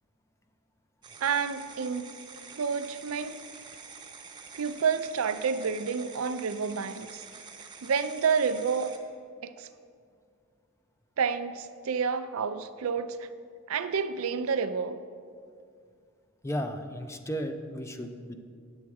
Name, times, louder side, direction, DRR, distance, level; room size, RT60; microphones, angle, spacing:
sound 1, 1.0-9.0, right 5 dB, 20° right, 0.8 m, -47 dB
voice 1, 1.2-2.1 2.5-3.3 4.5-7.2 7.6-8.9 9.4-9.7 11.2-13.3 13.7-15.0, right 6 dB, 75° right, 11 dB, 0.5 m, -29 dB
voice 2, 16.4-18.4, equal, 15° left, 7 dB, 0.4 m, -34 dB
9.4 x 7.2 x 4.7 m, 2.2 s
head